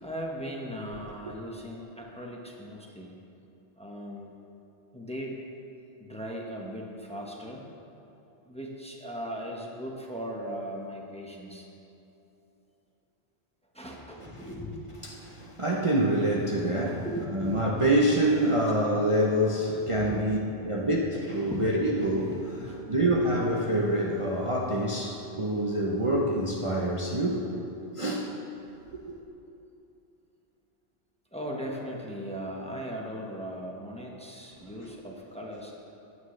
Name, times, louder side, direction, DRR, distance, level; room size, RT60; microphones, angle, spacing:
voice 1, 0.0-3.2 3.8-4.4 4.9-5.4 6.0-7.7 8.4-11.7 13.7-15.0 17.0-17.9 19.7-20.3 20.7-21.1 21.4-21.7 22.5-22.8 31.3-35.7, equal, 5° left, 1.1 m, -38 dB
voice 2, 15.0-17.1 17.3-27.5 27.9-28.3 34.6-34.7, right 1 dB, 30° right, 0.8 m, -26 dB
15.0 x 9.6 x 3.2 m
omnidirectional pair, 1.1 m